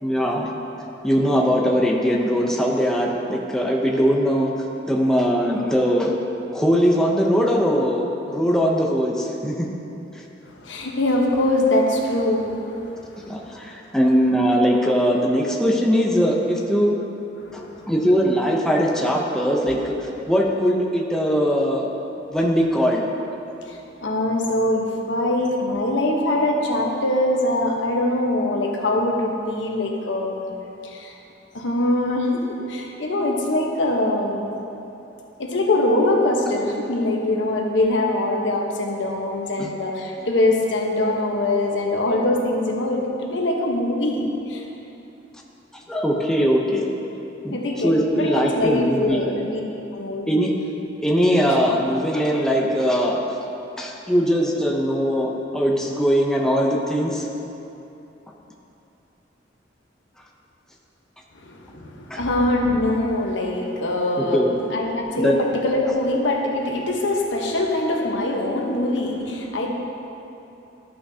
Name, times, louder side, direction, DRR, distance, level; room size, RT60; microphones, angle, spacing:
voice 1, 0.0-0.5 1.0-4.5 4.9-6.1 6.5-9.7 10.1-10.2 13.3-16.9 17.5-19.9 20.3-21.9 22.3-23.1 39.6-39.7 45.7-46.9 47.4-47.6 47.8-49.2 50.3-50.5 51.0-53.2 53.8-57.3 62.1-62.2 64.2-64.7 65.2-65.4, equal, 5° left, -2 dB, 0.6 m, -20 dB
voice 2, 10.4-13.6 17.4-17.9 23.7-31.1 31.5-34.5 35.4-44.7 47.5-49.6 49.9-50.3 61.3-64.4 64.7-69.7, left 1 dB, 75° left, 0 dB, 1.0 m, -23 dB
12.5 x 5.8 x 2.8 m, 2.9 s
head